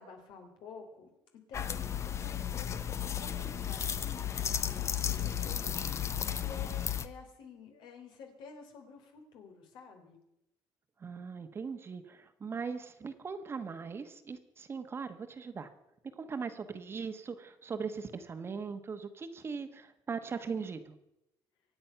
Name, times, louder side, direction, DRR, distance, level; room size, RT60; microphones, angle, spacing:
voice 1, 0.0-10.2, left 5 dB, 75° left, 4 dB, 3.5 m, -51 dB
sound 1, 1.5-7.1, left 9 dB, 35° left, 0.8 m, -34 dB
voice 2, 11.0-15.7 16.2-20.9, right 5 dB, 30° right, 9 dB, 1.2 m, -40 dB
24.5 x 8.8 x 5.8 m, 0.88 s
cardioid pair, 135°, 8 cm